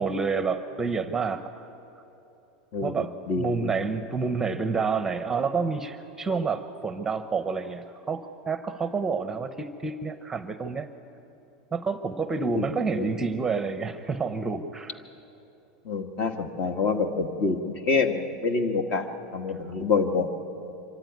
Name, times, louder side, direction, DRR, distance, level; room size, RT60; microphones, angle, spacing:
voice 1, 0.0-1.4 2.8-10.9 11.7-15.0, right 4 dB, 10° right, 9 dB, 0.8 m, -29 dB
voice 2, 2.7-3.8 12.5-12.7 12.9-13.1 15.8-19.1 19.3-20.3, left 4 dB, 45° left, 7 dB, 1.6 m, -27 dB
25.0 x 14.0 x 9.5 m, 3.0 s
supercardioid pair, 135°, 4 cm